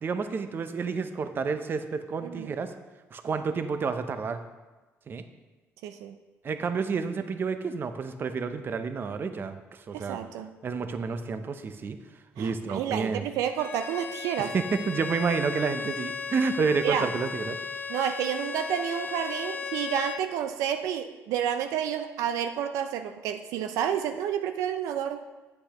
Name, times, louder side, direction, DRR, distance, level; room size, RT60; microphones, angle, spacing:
voice 1, 0.0-2.7 3.1-4.4 5.1-5.2 6.4-10.2 10.6-12.0 12.4-13.2 14.4-17.6, right 5 dB, 40° right, 9 dB, 0.6 m, -30 dB
voice 2, 5.8-6.1 9.9-10.5 12.4-14.5 16.8-17.1 17.9-25.2, right 9 dB, 90° right, 8 dB, 0.4 m, -30 dB
Bowed string instrument, 13.4-20.3, left 6 dB, 35° left, 0.6 m, -36 dB
8.4 x 7.8 x 2.9 m, 1.2 s
cardioid pair, 95°, 5 cm